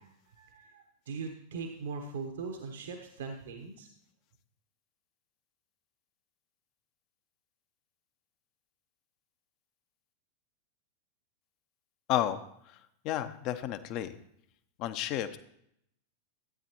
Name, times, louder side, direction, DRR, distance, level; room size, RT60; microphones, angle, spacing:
voice 1, 0.0-3.9, right 4 dB, 60° right, 4 dB, 1.2 m, -41 dB
voice 2, 12.1-12.4 13.0-14.1 14.8-15.4, left 12 dB, 40° left, 11 dB, 0.8 m, -31 dB
15.0 x 9.2 x 3.0 m, 0.73 s
figure-of-eight pair, 90°, 0 cm